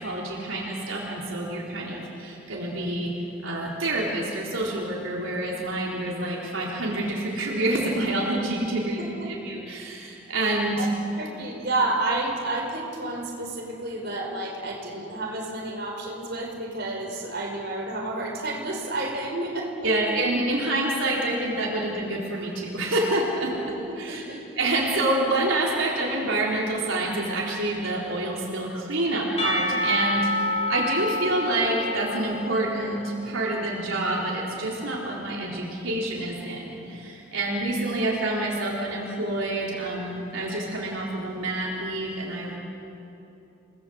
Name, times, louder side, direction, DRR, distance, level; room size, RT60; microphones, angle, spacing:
voice 1, 0.0-3.1 3.4-10.9 19.8-23.5 24.0-24.2 24.6-42.6, right 2 dB, 80° right, -3 dB, 4.0 m, -27 dB
voice 2, 11.2-19.9 23.7-23.8 24.1-24.4, right 2 dB, 55° right, 0 dB, 5.1 m, -30 dB
Percussion / Church bell, 29.4-33.4, left 1 dB, 30° left, 3.5 m, -28 dB
29.0 x 20.0 x 7.8 m, 2.9 s
head